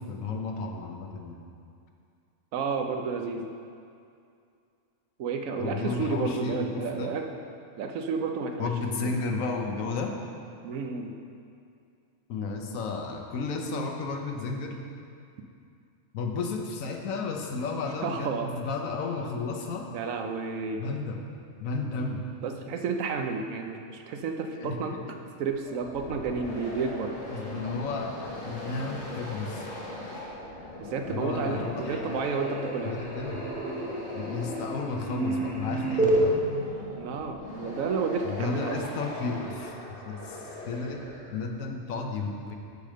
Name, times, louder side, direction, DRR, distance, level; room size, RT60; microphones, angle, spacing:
voice 1, 0.0-1.4 5.6-7.1 8.6-10.1 12.3-14.8 16.1-19.9 20.8-21.2 21.6-22.2 24.5-25.1 27.3-29.7 31.1-32.2 32.8-33.4 34.1-36.4 38.2-39.7 40.1-41.1 41.3-42.6, left 4 dB, 90° left, 2 dB, 1.2 m, -33 dB
voice 2, 2.5-3.5 5.2-7.3 7.8-9.0 10.6-11.2 18.0-18.5 19.9-20.8 22.4-25.0 25.4-27.1 30.8-33.0 37.0-38.8, right 5 dB, 85° right, 5 dB, 1.1 m, -31 dB
sound 1, 25.5-41.6, left 1 dB, 60° left, 1.6 m, -40 dB
sound 2, 30.4-30.8 31.1-36.2, right 1 dB, 5° right, 0.9 m, -31 dB
6.6 x 5.0 x 6.4 m, 2.5 s
omnidirectional pair, 1.4 m